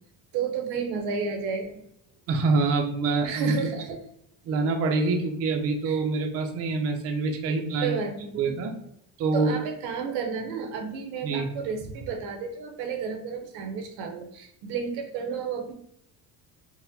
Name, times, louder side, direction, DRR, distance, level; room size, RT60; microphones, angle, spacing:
voice 1, 0.3-1.8 3.2-4.0 5.8-6.0 7.8-8.4 9.3-15.7, right 5 dB, 90° right, 4 dB, 0.8 m, -32 dB
voice 2, 2.3-3.6 4.4-8.0 8.3-8.8 9.2-9.6 11.2-11.5, right 3 dB, 40° right, 3 dB, 0.4 m, -25 dB
4.0 x 2.1 x 2.6 m, 0.75 s
cardioid pair, 165°, 38 cm